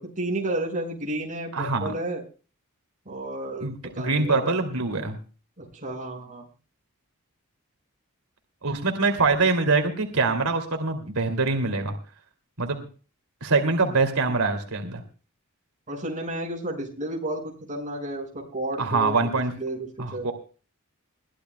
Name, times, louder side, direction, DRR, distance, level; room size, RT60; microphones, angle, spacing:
voice 1, 0.0-2.2 3.1-4.5 5.6-6.4 15.9-19.2 19.6-19.9 20.1-20.3, right 1 dB, 35° right, 0 dB, 5.5 m, -32 dB
voice 2, 1.5-1.9 3.6-5.2 8.6-11.9 12.6-12.9 13.4-15.0 18.8-19.5 20.0-20.3, right 3 dB, 90° right, 5 dB, 2.6 m, -24 dB
22.0 x 15.5 x 2.2 m, 0.37 s
head